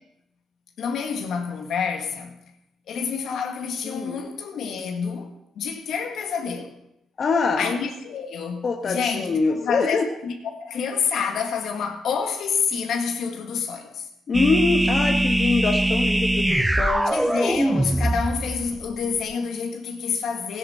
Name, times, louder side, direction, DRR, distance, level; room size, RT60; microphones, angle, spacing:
voice 1, 0.8-2.3 2.9-6.7 7.6-14.1 17.1-20.6, left 6 dB, 70° left, 1.8 m, -28 dB
voice 2, 3.8-4.2 7.2-7.7 8.6-10.1 14.3-17.2, left 4 dB, 50° left, 1.1 m, -24 dB
sound 1, 14.3-18.9, right 1 dB, 10° right, 0.4 m, -22 dB
16.0 x 10.5 x 4.4 m
cardioid pair, 90°, 0 cm